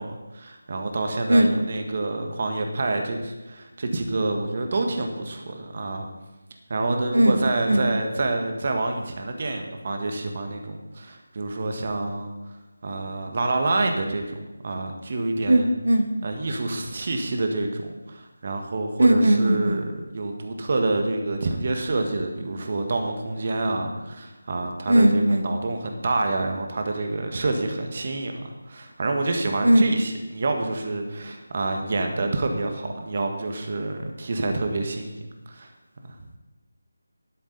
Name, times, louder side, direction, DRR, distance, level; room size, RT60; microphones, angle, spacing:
voice 1, 0.0-6.1 6.7-12.3 12.8-15.7 16.2-28.3 28.7-35.2 35.5-35.7 36.1-36.2, right 2 dB, 45° right, 4 dB, 1.6 m, -27 dB
voice 2, 15.5-16.1 19.0-19.8 24.9-25.4 29.6-29.8, right 1 dB, 80° right, 6 dB, 1.6 m, -18 dB
12.5 x 10.5 x 4.1 m, 1.1 s
figure-of-eight pair, 160°, 0 cm